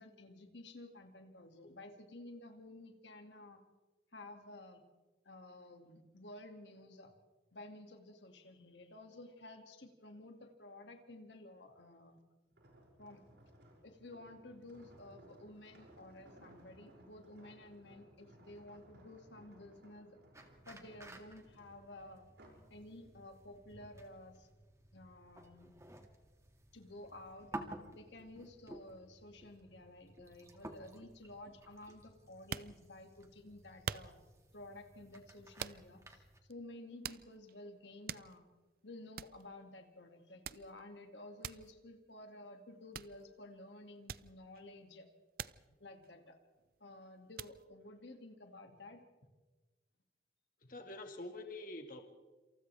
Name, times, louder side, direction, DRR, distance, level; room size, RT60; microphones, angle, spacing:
voice 1, 0.0-3.6 4.1-4.8 5.2-7.1 7.5-12.2 13.0-13.2 13.8-20.2 20.7-22.3 22.7-24.5 24.9-25.7 26.7-27.6 27.9-34.2 34.5-36.2 36.5-38.4 38.8-45.1 45.8-46.4 46.8-49.0 50.6-50.7, left 1 dB, 85° left, 4 dB, 2.4 m, -53 dB
sound 1, 12.5-22.7 23.2-23.4, right 1 dB, 80° right, 6.3 m, -61 dB
sound 2, 20.3-36.4, right 1 dB, 15° right, 2.1 m, -54 dB
sound 3, 32.3-33.2 33.9-34.4 35.6-36.1 36.5-36.6 37.0-37.6 37.9-38.6 38.9-39.0 39.2-39.4 40.4-40.8 41.4-41.7 42.9-43.2 44.1-44.7 45.4-45.7 46.0-46.8 47.4-47.6, right 7 dB, 55° right, 0.6 m, -45 dB
voice 2, 50.7-52.1, left 2 dB, 50° left, 4 dB, 2.0 m, -46 dB
28.0 x 27.5 x 3.5 m, 1.2 s
head